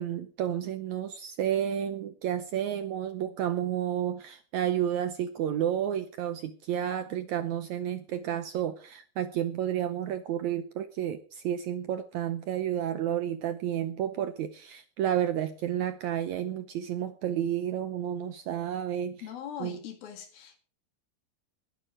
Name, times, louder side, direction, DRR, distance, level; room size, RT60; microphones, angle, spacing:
voice 1, 0.0-19.2 19.6-19.8, right 10 dB, 75° right, 1.8 m, -31 dB
voice 2, 19.2-20.6, left 9 dB, 80° left, 4.2 m, -41 dB
20.5 x 9.3 x 4.9 m
omnidirectional pair, 4.2 m